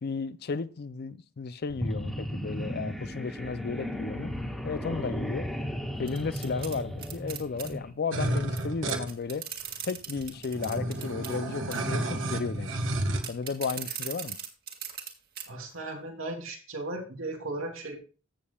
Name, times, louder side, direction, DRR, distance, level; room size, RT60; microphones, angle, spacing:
voice 1, 0.0-4.3 4.6-5.5 6.0-9.5 9.8-12.8 13.3-14.4, left 4 dB, 50° left, 0.5 m, -34 dB
sound 1, 1.7-7.9, equal, ahead, 1.7 m, -35 dB
sound 2, 6.1-7.7 8.6-8.7 8.9-11.4 11.7-12.0 13.2-15.1 15.4-15.5 15.9-16.0, right 9 dB, 50° right, 2.0 m, -39 dB
sound 3, 8.1-9.1 9.8-9.9 10.1-13.2, right 1 dB, 65° right, 1.4 m, -31 dB
voice 2, 15.5-18.0, right 2 dB, 85° right, 2.8 m, -36 dB
15.0 x 7.4 x 2.3 m
head